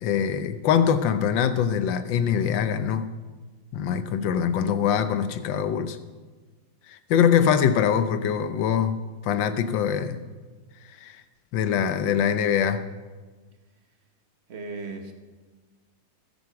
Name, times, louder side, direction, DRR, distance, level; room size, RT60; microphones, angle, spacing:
voice 1, 0.0-3.1 3.7-6.0 6.9-9.0 9.2-10.2 11.0-11.2 11.5-12.8, left 8 dB, 70° left, 11 dB, 1.5 m, -23 dB
voice 2, 14.5-15.1, right 3 dB, 35° right, 5 dB, 1.3 m, -36 dB
20.5 x 8.0 x 4.7 m, 1.3 s
omnidirectional pair, 2.2 m